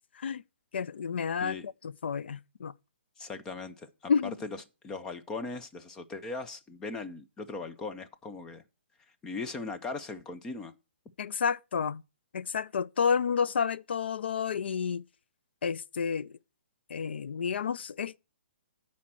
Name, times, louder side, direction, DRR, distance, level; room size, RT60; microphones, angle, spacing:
voice 1, 0.7-2.7 4.1-4.4 11.2-12.0 12.3-15.0 15.6-16.4 16.9-18.2, left 6 dB, 70° left, 0.5 m, -30 dB
voice 2, 3.2-4.1 4.4-4.6 4.8-8.6 9.2-10.7, left 3 dB, 10° left, 0.4 m, -39 dB
10.0 x 4.3 x 7.4 m
hypercardioid pair, 170°, 6 cm